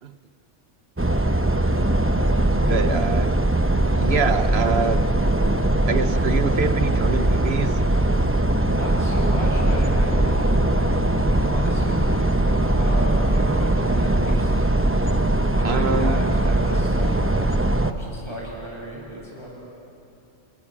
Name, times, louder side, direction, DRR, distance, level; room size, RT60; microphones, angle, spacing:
sound 1, 1.0-17.9, right 1 dB, 10° right, 0.8 m, -20 dB
voice 1, 2.7-3.3 4.0-5.1 5.9-7.8 15.6-16.2, right 5 dB, 55° right, 10 dB, 1.2 m, -25 dB
voice 2, 8.7-12.4 12.6-14.7 15.5-17.5 17.8-19.5, equal, 20° left, -4 dB, 8.2 m, -34 dB
28.5 x 27.5 x 7.5 m, 2.7 s
omnidirectional pair, 1.3 m